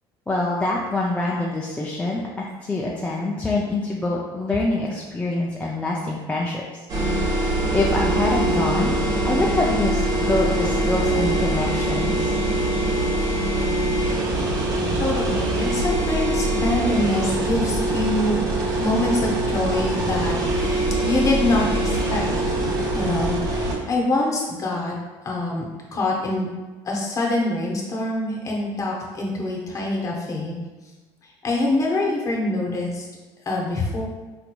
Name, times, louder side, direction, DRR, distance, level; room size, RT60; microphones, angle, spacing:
voice 1, 0.3-6.6 7.7-8.9 9.2-12.3 32.1-32.2, left 2 dB, 10° left, -3 dB, 0.3 m, -25 dB
sound 1, 6.9-23.8, right 1 dB, 35° right, 0.8 m, -23 dB
voice 2, 14.9-18.4 18.8-22.3 22.9-25.0 25.2-25.6 25.9-26.5 26.8-30.6 31.4-33.1 33.5-34.0, left 2 dB, 30° left, -2 dB, 0.8 m, -25 dB
3.9 x 2.9 x 2.2 m, 1.2 s
cardioid pair, 120°, 10 cm